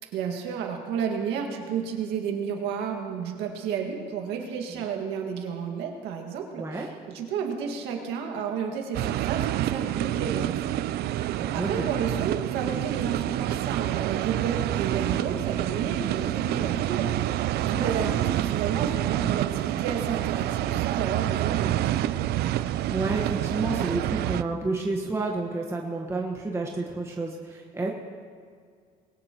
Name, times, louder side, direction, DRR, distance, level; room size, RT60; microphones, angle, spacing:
voice 1, 0.1-10.7 11.2-22.2, right 7 dB, 90° right, 2 dB, 2.0 m, -32 dB
voice 2, 6.6-6.9 11.4-11.9 17.7-18.1 22.9-27.9, right 2 dB, 15° right, -1 dB, 1.4 m, -30 dB
sound 1, 8.9-24.4, right 13 dB, 70° right, 0.4 m, -27 dB
21.5 x 17.5 x 3.0 m, 2.1 s
cardioid pair, 110°, 17 cm